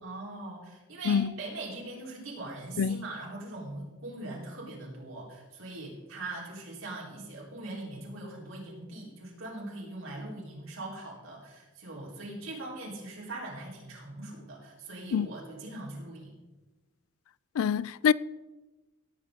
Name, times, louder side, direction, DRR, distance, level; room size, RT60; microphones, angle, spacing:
voice 1, 0.0-16.3, right 2 dB, 75° right, 4.1 m, -41 dB
voice 2, 17.6-18.1, left 7 dB, 85° left, 0.3 m, -25 dB
17.0 x 8.5 x 3.8 m
head